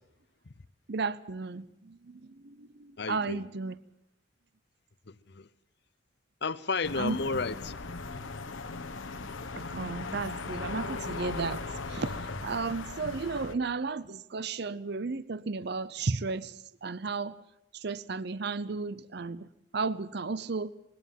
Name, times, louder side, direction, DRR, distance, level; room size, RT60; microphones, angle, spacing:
voice 1, 0.9-3.7 7.0-7.4 9.6-17.4 17.7-19.5 19.7-20.7, right 4 dB, 55° right, 17 dB, 0.6 m, -34 dB
voice 2, 3.0-3.4 5.1-5.5 6.4-7.7, left 4 dB, 60° left, 16 dB, 0.8 m, -32 dB
sound 1, 6.8-13.5, left 3 dB, 85° left, 1.3 m, -38 dB
21.0 x 17.0 x 7.4 m, 0.88 s
head